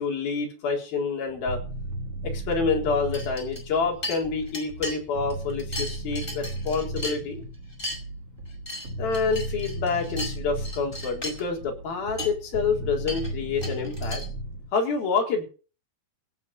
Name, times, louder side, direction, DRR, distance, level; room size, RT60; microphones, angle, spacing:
voice 1, 0.0-1.6 2.2-7.4 9.0-14.2 14.7-15.4, left 4 dB, 75° left, 1 dB, 5.9 m, -27 dB
sound 1, 1.3-14.7, right 1 dB, 40° right, 4.6 m, -35 dB
sound 2, 3.1-3.8 4.0-5.0 5.3-7.4 7.7-8.0 8.4-10.3 10.6-11.4 11.9-12.0 12.2-12.3 13.0-14.3, left 1 dB, 15° left, 5.4 m, -36 dB
16.5 x 8.7 x 6.8 m, 0.36 s
omnidirectional pair, 4.3 m